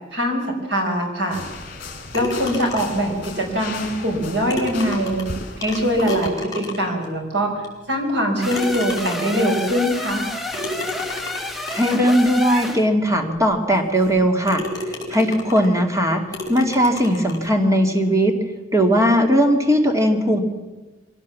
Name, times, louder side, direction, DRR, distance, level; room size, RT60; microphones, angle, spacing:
voice 1, 0.1-1.4 2.1-5.3 5.6-10.3, equal, 65° right, 2 dB, 5.2 m, -22 dB
sound 1, 1.3-6.3, left 3 dB, 50° left, 4.1 m, -36 dB
sound 2, 2.1-3.1 4.1-4.2 4.5-7.0 7.6-7.7 8.5-9.4 10.5-12.1 12.7-12.8 13.4-13.5 14.0-14.2 14.5-15.8 16.3-17.5, left 2 dB, 20° left, 4.8 m, -31 dB
sound 3, 8.4-12.9, left 1 dB, ahead, 1.5 m, -29 dB
voice 2, 11.7-14.6 15.1-16.2 16.5-18.3 18.7-20.4, equal, 15° right, 4 dB, 2.3 m, -18 dB
23.5 x 17.0 x 7.4 m, 1.2 s
head